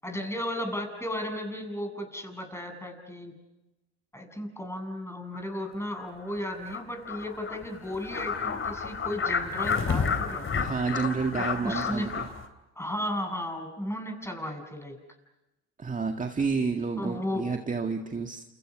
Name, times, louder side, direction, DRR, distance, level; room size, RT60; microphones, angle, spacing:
voice 1, 0.0-3.4 4.1-10.5 11.4-12.1 12.8-15.0 17.0-17.5, left 1 dB, 5° left, 5 dB, 7.6 m, -34 dB
sound 1, 5.3-5.4 5.9-6.1 6.3-6.4 6.7-6.8 7.0-12.4, left 5 dB, 35° left, 3.9 m, -31 dB
voice 2, 10.5-12.3 15.8-18.4, right 4 dB, 20° right, 4 dB, 1.9 m, -30 dB
30.0 x 29.0 x 6.2 m, 1.0 s
hypercardioid pair, 70°, 34 cm